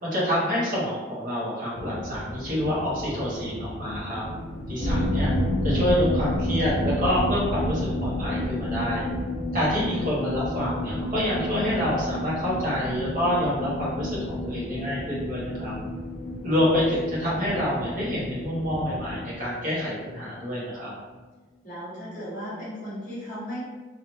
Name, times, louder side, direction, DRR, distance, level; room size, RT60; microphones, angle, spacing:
voice 1, 0.0-4.2 4.7-5.3 5.6-9.1 9.5-15.7 16.4-20.9, equal, 45° right, -6 dB, 0.9 m, -27 dB
sound 1, 1.7-19.3, left 1 dB, 85° left, 0.4 m, -39 dB
sound 2, 4.8-20.2 20.4-20.6 20.9-21.0, left 1 dB, 25° left, 0.4 m, -30 dB
voice 2, 21.6-23.6, equal, 45° left, -10 dB, 1.0 m, -36 dB
3.1 x 2.3 x 2.6 m, 1.3 s
head